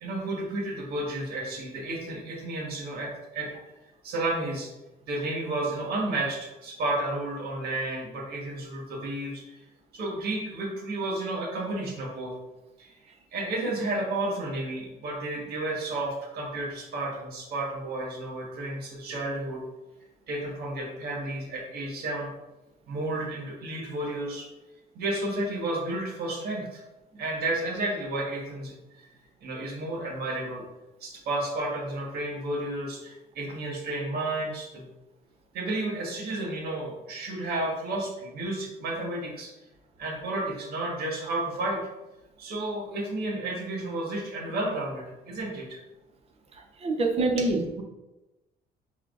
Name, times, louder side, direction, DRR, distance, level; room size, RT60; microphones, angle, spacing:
voice 1, 0.0-3.7 4.0-4.7 5.1-9.6 9.9-12.4 12.8-19.6 20.3-22.3 22.9-24.5 24.9-26.8 27.2-29.1 29.4-30.6 31.0-34.8 35.5-39.5 40.0-41.8 42.4-45.8 47.2-47.5, right 2 dB, 70° right, -1 dB, 1.4 m, -32 dB
voice 2, 46.8-47.8, right 2 dB, 35° right, 2 dB, 0.9 m, -26 dB
5.5 x 3.5 x 2.5 m, 1.0 s
cardioid pair, 110°, 17 cm